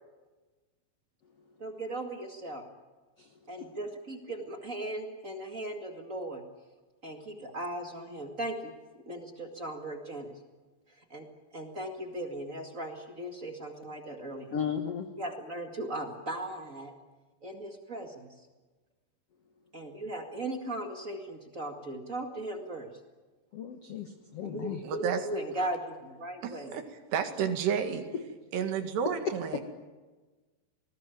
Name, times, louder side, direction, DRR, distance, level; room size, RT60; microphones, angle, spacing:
voice 1, 1.6-2.6 3.5-6.4 7.0-10.3 10.9-11.3 11.5-14.6 15.2-16.9 17.4-18.3 19.7-22.9 24.4-26.7, right 1 dB, 35° right, 4 dB, 1.3 m, -38 dB
voice 2, 14.5-15.1 23.5-24.8 28.1-28.2, left 8 dB, 75° left, 7 dB, 1.4 m, -35 dB
voice 3, 24.8-25.3 25.6-25.7 26.4-26.8 27.1-28.1 28.5-29.6, right 7 dB, 80° right, 7 dB, 4.1 m, -31 dB
27.5 x 19.5 x 9.2 m, 1.3 s
omnidirectional pair, 4.8 m